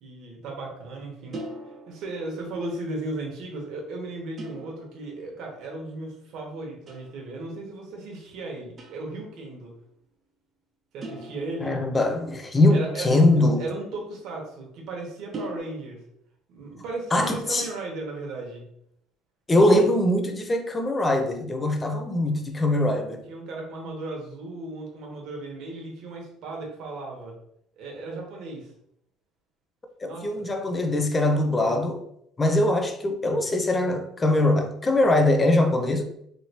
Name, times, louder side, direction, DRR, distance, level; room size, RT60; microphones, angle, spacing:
voice 1, 0.0-1.4 1.9-9.7 10.9-11.8 12.7-13.1 13.6-16.0 16.5-18.6 23.3-27.3 27.8-28.7 30.0-30.5, right 2 dB, 65° right, 1.0 m, -36 dB
sound 1, 1.3-2.6 4.4-5.5 6.9-7.3 8.8-9.3 11.0-12.1 13.1-14.8 15.3-15.6, right 1 dB, 40° right, 0.7 m, -40 dB
voice 2, 11.6-13.6 17.1-17.6 19.5-23.2 30.0-32.0 32.4-36.0, left 1 dB, 20° left, 0.5 m, -22 dB
3.1 x 2.8 x 2.8 m
cardioid pair, 105°, 0 cm